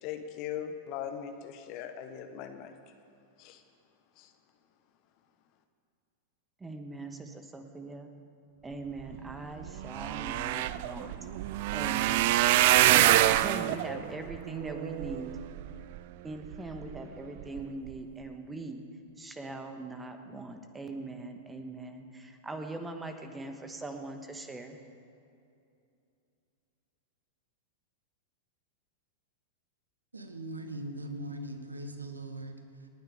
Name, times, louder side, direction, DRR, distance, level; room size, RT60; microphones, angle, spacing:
voice 1, 0.0-2.7 3.4-3.6 4.2-4.3, left 9 dB, 45° left, 7 dB, 1.2 m, -39 dB
voice 2, 6.6-8.1 8.6-11.1 11.7-12.4 12.8-15.3 16.2-18.8 19.2-24.8, right 2 dB, 10° right, 6 dB, 1.4 m, -41 dB
sound 1, 9.3-9.4 9.6-16.0 16.5-17.0 17.4-17.6 17.9-18.0, right 14 dB, 50° right, 0.4 m, -26 dB
voice 3, 30.1-32.9, right 1 dB, 80° right, 7 dB, 1.2 m, -40 dB
28.5 x 9.5 x 3.6 m, 2.6 s
figure-of-eight pair, 95°, 0 cm